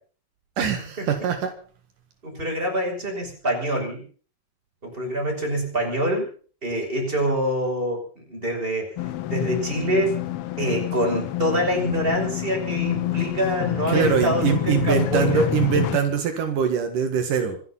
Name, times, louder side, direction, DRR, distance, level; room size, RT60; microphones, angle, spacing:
voice 1, 0.6-1.6 13.9-17.6, right 7 dB, 75° right, 6 dB, 3.3 m, -23 dB
voice 2, 2.2-4.0 4.8-6.3 6.6-8.9 9.3-10.2 10.6-15.5, equal, 15° right, 2 dB, 5.6 m, -25 dB
sound 1, 9.0-16.0, left 13 dB, 70° left, 1.4 m, -27 dB
26.0 x 9.2 x 5.6 m, 0.43 s
omnidirectional pair, 3.8 m